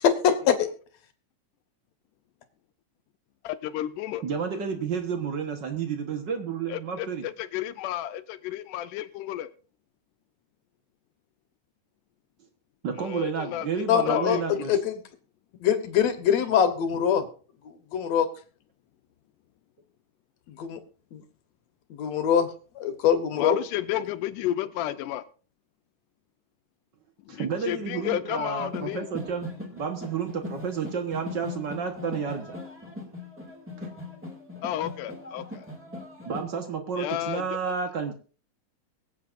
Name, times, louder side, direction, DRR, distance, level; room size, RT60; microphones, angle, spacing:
voice 1, 0.2-0.7 13.9-14.4 14.7-15.0 15.6-17.2 17.9-18.3 20.5-20.8 21.1-21.2 21.9-22.5 22.8-23.6, left 8 dB, 65° left, 8 dB, 2.2 m, -23 dB
voice 2, 3.4-4.2 6.7-9.5 13.0-14.6 23.4-25.2 27.3-29.1 34.6-35.7 37.0-37.6, left 12 dB, 80° left, 11 dB, 2.2 m, -32 dB
voice 3, 4.2-7.2 12.8-14.7 27.3-32.6 33.8-33.9 36.3-38.1, right 6 dB, 55° right, 5 dB, 1.2 m, -31 dB
sound 1, 28.5-36.4, left 2 dB, 5° right, 1.6 m, -39 dB
23.5 x 8.4 x 2.5 m, 0.38 s
omnidirectional pair, 3.7 m